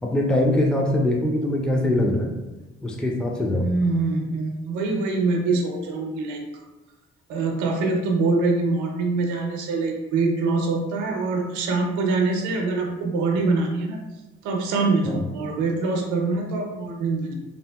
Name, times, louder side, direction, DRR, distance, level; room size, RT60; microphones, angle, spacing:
voice 1, 0.0-2.3 2.8-3.7 15.0-15.2, left 1 dB, 5° left, 0 dB, 0.4 m, -22 dB
voice 2, 3.5-6.4 7.3-14.0 14.4-17.3, right 3 dB, 80° right, 2 dB, 0.6 m, -24 dB
2.7 x 2.6 x 2.2 m, 1.1 s
hypercardioid pair, 50°, 30 cm